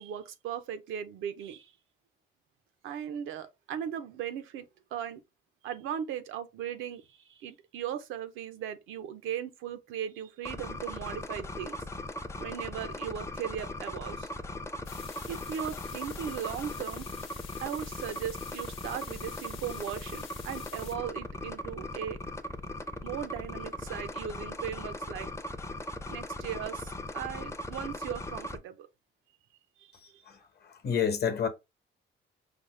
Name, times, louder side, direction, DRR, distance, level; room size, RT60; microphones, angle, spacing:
voice 1, 0.0-1.7 2.8-5.2 5.6-11.7 12.4-14.3 15.3-17.1 17.6-22.2 23.0-25.3 26.1-28.9 29.8-30.2, right 9 dB, 90° right, 0.6 m, -38 dB
sound 1, 10.5-28.6, left 1 dB, 15° left, 0.5 m, -39 dB
sound 2, 14.8-21.0, left 8 dB, 90° left, 0.7 m, -48 dB
voice 2, 30.3-31.5, left 7 dB, 55° left, 0.9 m, -30 dB
5.0 x 2.0 x 3.1 m
cardioid pair, 90°, 20 cm